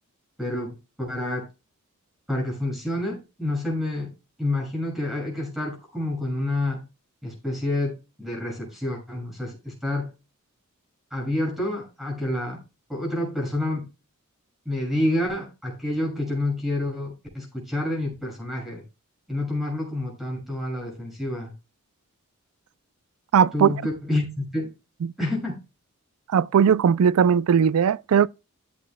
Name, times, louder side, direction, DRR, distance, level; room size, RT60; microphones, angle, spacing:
voice 1, 0.4-1.5 2.3-4.1 4.4-6.8 7.2-10.1 11.1-12.6 12.9-13.9 14.6-18.8 19.3-21.5 23.5-24.7 25.2-25.6, left 1 dB, ahead, 6.4 m, -28 dB
voice 2, 23.3-23.7 26.3-28.3, right 7 dB, 80° right, 0.4 m, -18 dB
14.5 x 8.5 x 2.2 m
head